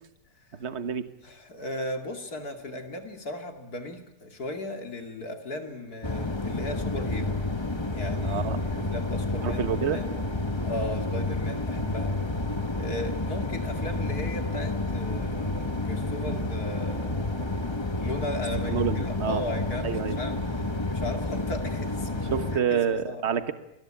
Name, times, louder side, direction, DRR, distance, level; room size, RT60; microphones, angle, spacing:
voice 1, 0.5-1.1 8.2-8.6 9.4-10.0 18.7-19.4 19.8-20.2 22.3-23.5, right 7 dB, 40° right, 11 dB, 1.6 m, -28 dB
voice 2, 1.2-7.4 7.9-9.6 9.9-10.2 10.6-12.1 12.7-17.6 17.9-22.3 22.5-23.2, left 1 dB, 60° left, 5 dB, 3.0 m, -37 dB
sound 1, 6.0-22.6, left 2 dB, 15° left, 1.5 m, -30 dB
29.0 x 21.5 x 8.9 m, 0.86 s
omnidirectional pair, 1.9 m